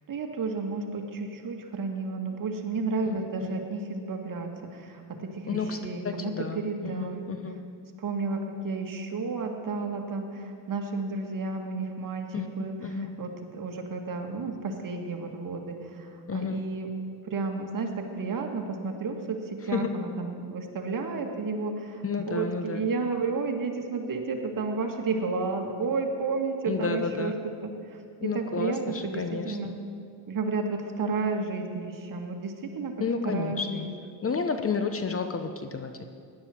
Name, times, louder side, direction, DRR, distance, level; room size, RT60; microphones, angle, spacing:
voice 1, 0.1-7.2 8.0-12.8 13.2-16.9 17.3-29.7 30.3-32.9 33.2-33.9, right 4 dB, 40° right, 3 dB, 2.0 m, -32 dB
voice 2, 3.0-3.6 5.5-5.8 6.0-7.6 12.3-12.5 12.8-13.1 16.3-16.6 19.6-20.0 22.0-22.9 26.7-27.4 28.2-29.7 33.0-33.9 34.2-36.1, left 5 dB, 30° left, 7 dB, 0.9 m, -31 dB
16.0 x 11.0 x 4.5 m, 2.3 s
supercardioid pair, 80°, 49 cm